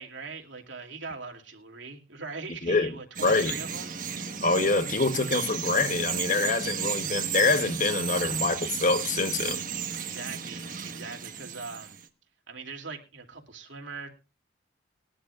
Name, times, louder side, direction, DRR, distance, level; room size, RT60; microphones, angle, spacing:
voice 1, 0.0-3.9 10.0-12.0 12.5-14.1, right 4 dB, 75° right, 2.7 m, -41 dB
voice 2, 3.2-3.6 4.4-9.6, left 3 dB, 40° left, 1.1 m, -25 dB
Bird vocalization bird call bird song, 3.2-12.1, right 7 dB, 45° right, 1.3 m, -34 dB
20.5 x 11.5 x 2.4 m
head